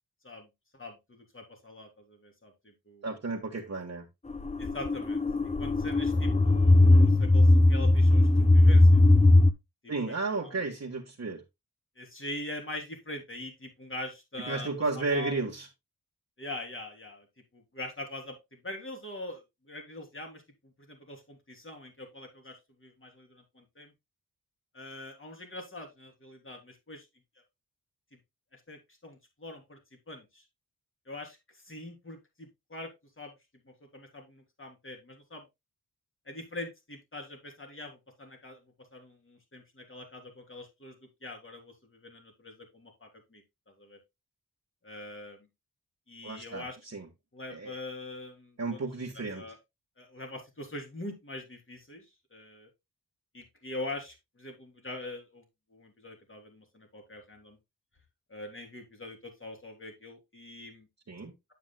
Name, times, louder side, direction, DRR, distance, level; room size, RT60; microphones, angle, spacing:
voice 1, 0.2-3.1 4.6-9.0 9.8-10.7 12.0-15.4 16.4-17.3 17.5-23.9 24.7-27.0 28.5-29.8 30.1-30.4 31.1-32.9 33.2-33.3 33.6-35.4 36.2-38.6 38.9-41.0 41.2-44.0 44.8-45.5 46.1-46.8 47.3-48.8 49.1-49.6 50.0-52.7 53.3-55.4 55.7-57.6 58.3-60.9, left 1 dB, 35° left, 3.2 m, -43 dB
voice 2, 3.0-4.1 9.9-11.4 14.5-15.7 46.2-47.1 47.5-47.7 48.6-49.4 61.1-61.3, right 3 dB, 45° right, 1.5 m, -33 dB
sound 1, 4.3-9.5, left 2 dB, 20° left, 0.7 m, -20 dB
9.2 x 8.2 x 2.2 m
wide cardioid pair, 70°, 36 cm